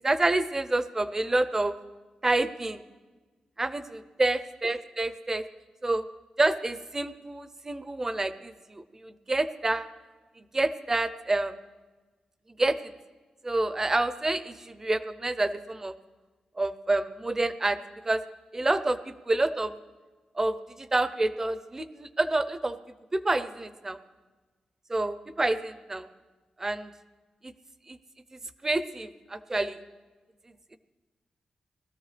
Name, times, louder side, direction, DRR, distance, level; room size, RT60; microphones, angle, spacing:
voice 1, 0.0-1.8 2.2-2.8 3.6-5.5 5.8-6.1 6.4-9.9 10.5-11.5 12.6-12.9 13.4-15.9 16.6-17.8 18.1-18.2 18.5-19.8 20.4-22.8 23.1-24.0 24.9-26.1 26.6-26.9 27.4-27.5 27.9-28.0 28.6-29.8, right 2 dB, 20° right, 13 dB, 0.5 m, -28 dB
20.5 x 13.5 x 3.3 m, 1.3 s
wide cardioid pair, 135°, 2 cm